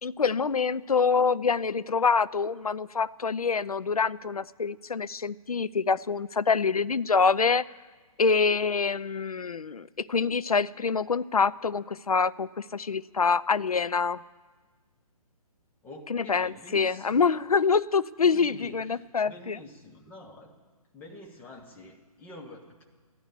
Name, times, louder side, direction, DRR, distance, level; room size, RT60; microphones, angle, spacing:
voice 1, 0.0-7.7 8.2-14.2 16.1-19.6, left 5 dB, 75° left, 17 dB, 0.5 m, -26 dB
voice 2, 15.8-17.3 18.3-20.5 20.9-22.8, left 1 dB, 10° left, 0 dB, 1.2 m, -47 dB
15.5 x 12.5 x 6.7 m, 1.4 s
figure-of-eight pair, 135°, 19 cm